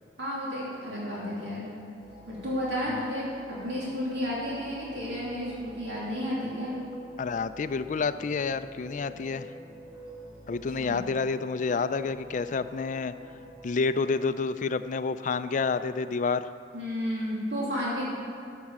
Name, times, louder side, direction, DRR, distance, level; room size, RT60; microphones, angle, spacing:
voice 1, 0.2-1.7 2.3-6.7 10.7-11.0 16.7-18.1, equal, 75° right, -7 dB, 2.8 m, -32 dB
sound 1, 2.0-14.2, right 1 dB, 25° right, 3.1 m, -48 dB
voice 2, 7.2-9.5 10.5-13.1 13.6-16.5, left 4 dB, 45° left, 12 dB, 0.4 m, -29 dB
12.5 x 6.6 x 7.2 m, 2.5 s
head